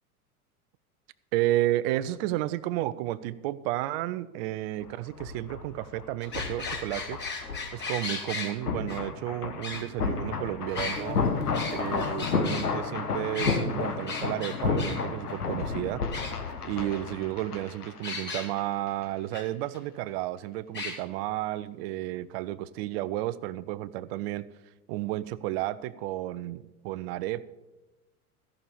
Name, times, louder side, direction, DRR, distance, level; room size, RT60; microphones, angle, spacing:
voice 1, 1.3-7.2 7.7-11.2 11.7-16.0 16.6-24.4 24.9-27.4, right 15 dB, 45° right, 16 dB, 0.7 m, -32 dB
sound 1, 4.8-18.6 18.9-19.0, left 4 dB, 80° left, 1.4 m, -32 dB
sound 2, 6.2-8.5 8.9-9.0 9.6-10.3 10.7-12.7 13.3-13.6 14.1-15.0 15.3-15.4 15.6-15.7 16.1-16.7 18.0-18.5 19.3-19.4 19.7-19.8 20.7-21.0, left 3 dB, 25° left, 2.7 m, -35 dB
sound 3, 10.9-16.4, left 5 dB, 65° left, 1.5 m, -41 dB
14.5 x 6.5 x 6.9 m, 1.1 s
figure-of-eight pair, 85°, 45 cm